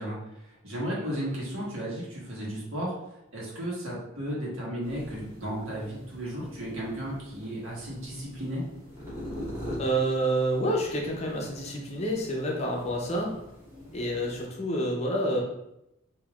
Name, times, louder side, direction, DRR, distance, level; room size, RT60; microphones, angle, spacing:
voice 1, 0.0-2.9 3.3-8.6, equal, 75° right, -5 dB, 1.4 m, -34 dB
sound 1, 4.8-14.5, equal, 15° right, 1.2 m, -43 dB
voice 2, 9.8-13.3 13.9-15.4, right 1 dB, 30° left, -1 dB, 0.7 m, -28 dB
5.4 x 2.8 x 2.4 m, 0.85 s
head